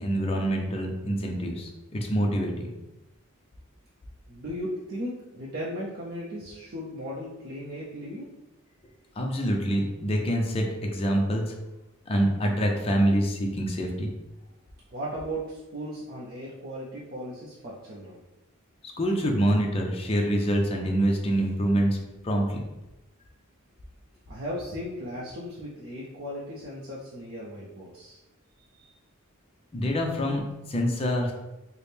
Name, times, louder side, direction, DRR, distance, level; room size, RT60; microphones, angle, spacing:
voice 1, 0.0-2.7 9.2-11.5 12.1-14.1 19.0-22.0 22.2-22.6 29.7-30.4 30.7-31.3, equal, 25° left, 1 dB, 0.4 m, -26 dB
voice 2, 4.3-8.3 14.9-18.2 24.3-28.2 28.7-28.9, equal, 45° right, -5 dB, 0.5 m, -36 dB
4.2 x 2.0 x 3.4 m, 1.0 s
head